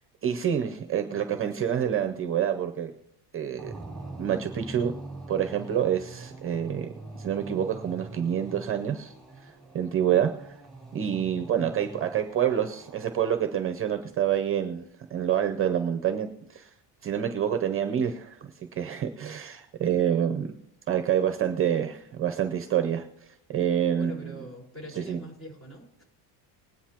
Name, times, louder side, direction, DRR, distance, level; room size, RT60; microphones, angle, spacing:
voice 1, 0.2-2.9 3.3-3.7 4.2-4.9 5.3-6.9 7.2-9.1 9.4-9.5 9.7-10.3 10.9-14.8 15.1-16.7 17.0-18.4 18.7-20.5 20.9-24.3 25.0-25.2, right 9 dB, 30° right, 7 dB, 0.6 m, -27 dB
sound 1, 3.6-13.5, right 2 dB, ahead, 3.0 m, -44 dB
voice 2, 24.0-26.0, right 1 dB, 35° left, -1 dB, 4.6 m, -43 dB
20.5 x 9.5 x 2.9 m, 0.75 s
cardioid pair, 165°, 47 cm